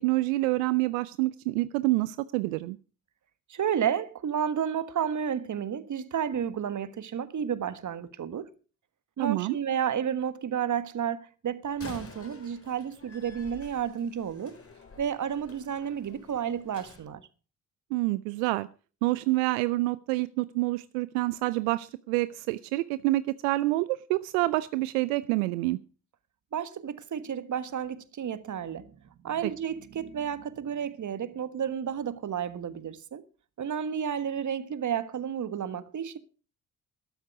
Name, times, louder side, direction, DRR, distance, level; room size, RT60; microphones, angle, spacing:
voice 1, 0.0-2.8 9.2-9.6 17.9-18.7 19.0-25.8 29.4-29.5, right 19 dB, 80° right, 0.6 m, -27 dB
voice 2, 3.5-8.5 9.2-14.6 15.0-17.2 26.5-28.9 29.2-33.2 33.6-36.2, right 8 dB, 45° right, 1.5 m, -31 dB
Slam, 11.7-17.0, left 3 dB, 35° left, 4.7 m, -49 dB
13.0 x 12.5 x 4.8 m
hypercardioid pair, 45°, 40 cm